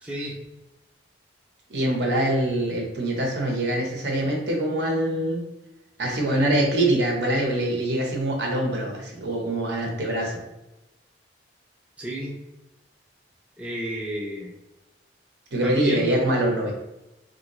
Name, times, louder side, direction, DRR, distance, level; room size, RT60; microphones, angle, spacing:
voice 1, 0.0-0.3 12.0-12.3 13.6-14.5 15.6-16.2, equal, 5° right, -4 dB, 0.4 m, -31 dB
voice 2, 1.7-5.4 6.0-10.4 15.5-16.7, right 1 dB, 65° right, 0 dB, 0.8 m, -24 dB
3.4 x 2.6 x 3.0 m, 0.95 s
head